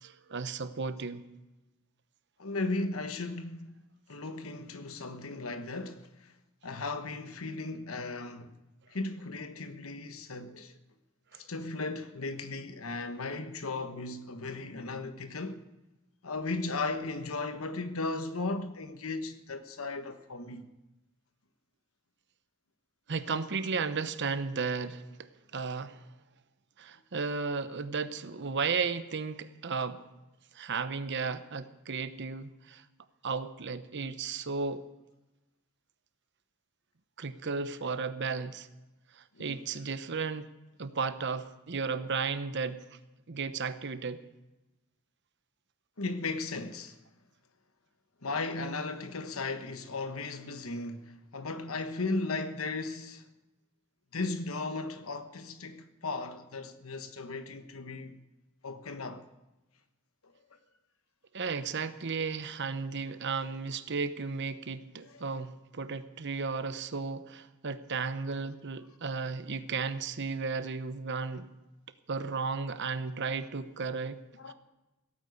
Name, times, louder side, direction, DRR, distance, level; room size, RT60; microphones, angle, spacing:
voice 1, 0.0-1.3 11.3-11.4 23.1-26.0 26.8-30.0 30.5-32.8 33.2-34.8 37.2-38.7 39.1-40.5 40.8-42.8 43.3-44.2 61.3-71.5 72.1-74.2 74.5-74.6, right 5 dB, 55° right, 0.9 m, -34 dB
voice 2, 2.4-3.8 4.1-6.3 6.6-8.5 8.9-10.7 11.4-15.6 16.2-20.7 39.3-39.6 46.0-47.0 48.2-53.3 54.1-58.2 58.6-59.3 65.1-65.2 74.4-74.5, left 3 dB, 80° left, 1.2 m, -36 dB
17.0 x 9.0 x 8.2 m
head